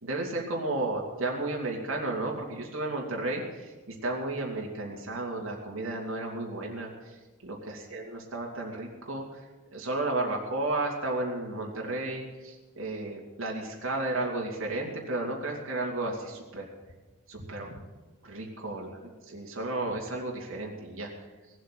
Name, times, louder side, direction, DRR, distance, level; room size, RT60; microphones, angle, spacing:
voice 1, 0.0-9.4 9.7-16.7 17.3-17.8 18.2-18.9 19.3-21.1, right 2 dB, 70° right, -1 dB, 2.7 m, -33 dB
19.5 x 7.8 x 7.8 m, 1.3 s
head